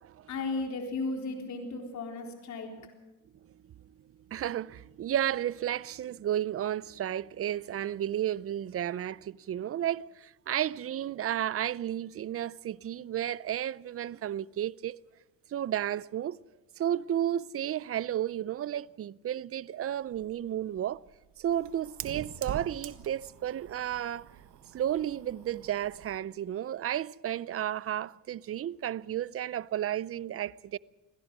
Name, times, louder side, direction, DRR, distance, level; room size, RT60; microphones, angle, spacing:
voice 1, 0.3-2.7, left 3 dB, 65° left, 4.0 m, -35 dB
voice 2, 4.3-15.0 15.5-16.4 16.8-21.0 21.4-24.3 24.7-30.8, right 11 dB, 50° right, 0.6 m, -32 dB
Fire, 20.0-26.2, right 10 dB, 80° right, 1.6 m, -45 dB
26.0 x 17.5 x 6.2 m
cardioid pair, 90°, 30 cm